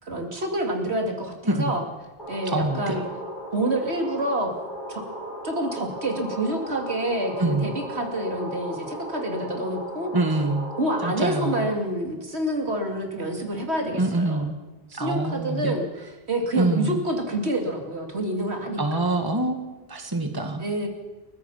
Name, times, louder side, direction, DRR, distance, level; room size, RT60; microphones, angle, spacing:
voice 1, 0.0-1.8 2.3-3.0 3.5-4.5 4.9-5.0 5.4-10.1 10.8-14.4 14.9-19.0 20.6-20.9, right 1 dB, 80° right, 3 dB, 3.1 m, -28 dB
sound 1, 2.2-11.7, right 1 dB, 45° left, 7.7 m, -36 dB
voice 2, 2.5-3.0 7.4-7.7 10.1-10.7 11.0-11.7 13.9-14.6 14.9-15.8 16.5-17.0 18.8-20.9, right 2 dB, 20° right, 5 dB, 1.8 m, -25 dB
30.0 x 15.0 x 5.8 m, 1.2 s
omnidirectional pair, 1.1 m